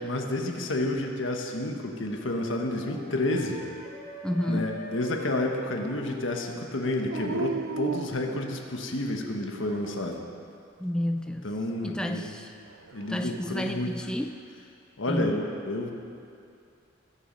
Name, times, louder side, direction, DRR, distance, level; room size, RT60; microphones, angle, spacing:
voice 1, 0.0-3.6 4.5-10.2 11.4-12.3 12.9-13.9 15.0-15.9, left 1 dB, 70° left, 3 dB, 1.3 m, -30 dB
Wind instrument woodwind instrument, 1.9-7.5, left 1 dB, 50° left, 2.4 m, -44 dB
voice 2, 4.2-4.8 10.8-11.5 11.8-12.5 13.1-14.4 15.1-15.4, left 1 dB, 5° left, 5 dB, 0.3 m, -30 dB
Dog, 7.1-9.0 9.6-10.4 12.7-13.5, right 5 dB, 75° right, 0.5 m, -36 dB
20.5 x 7.4 x 5.3 m, 2.5 s
head